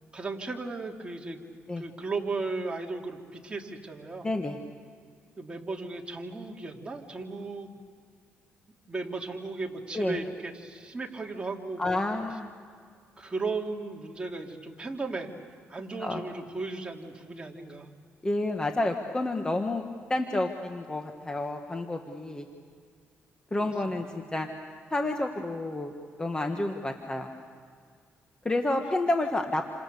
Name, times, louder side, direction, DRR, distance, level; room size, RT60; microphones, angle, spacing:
voice 1, 0.1-1.4 1.8-4.3 5.4-7.7 8.9-12.0 13.2-15.3 15.7-17.9 23.6-23.7, right 3 dB, 20° right, 0 dB, 3.2 m, -35 dB
voice 2, 4.2-4.6 9.9-10.2 11.8-12.5 16.0-16.2 18.2-19.8 20.1-22.5 23.5-24.5 24.9-25.9 26.2-27.3 28.5-29.6, left 2 dB, 20° left, 4 dB, 1.8 m, -29 dB
29.5 x 27.0 x 7.0 m, 2.1 s
cardioid pair, 90°, 5 cm